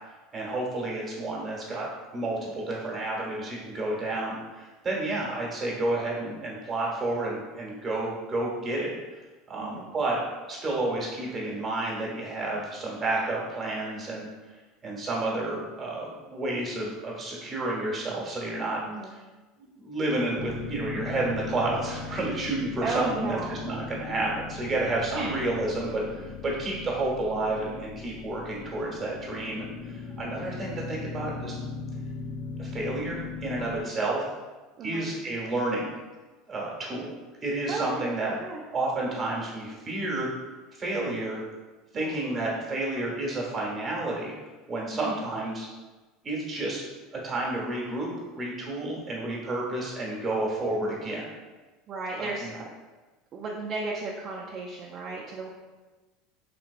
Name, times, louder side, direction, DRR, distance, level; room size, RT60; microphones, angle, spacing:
voice 1, 0.3-1.9 2.1-9.0 9.5-10.2 10.5-14.3 14.8-18.8 19.6-31.6 32.6-34.2 34.8-36.0 36.5-38.3 38.7-40.3 40.8-41.4 41.9-44.3 44.7-45.7 46.2-46.8 47.1-48.1 48.4-51.3 52.2-52.5, right 2 dB, 25° right, -3 dB, 1.1 m, -30 dB
voice 2, 9.6-9.9 18.8-19.1 22.8-23.5 25.1-25.4 34.8-35.1 37.7-38.1 38.4-38.6 41.9-42.2 44.9-45.2 51.9-52.7 53.3-55.5, right 3 dB, 45° right, -2 dB, 0.4 m, -34 dB
sound 1, 20.4-33.8, left 4 dB, 55° left, 0.3 m, -39 dB
3.4 x 2.8 x 2.4 m, 1.2 s
hypercardioid pair, 90°, 0 cm